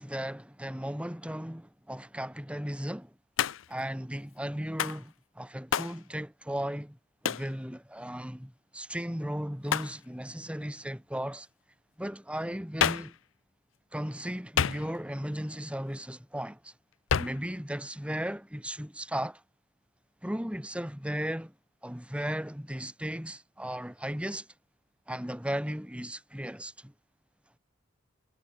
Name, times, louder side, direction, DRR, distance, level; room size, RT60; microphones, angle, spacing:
voice 1, 0.0-3.1 3.7-7.0 7.2-11.5 12.0-13.2 13.9-16.7 17.2-19.4 20.2-21.5 21.8-24.5 25.1-26.9, equal, 5° right, 3.0 m, -36 dB
Hands, 3.4-3.8 4.8-5.0 5.7-6.0 7.2-7.5 9.7-10.0 12.8-13.2 14.6-15.1 17.1-17.5, left 8 dB, 80° left, 0.6 m, -29 dB
head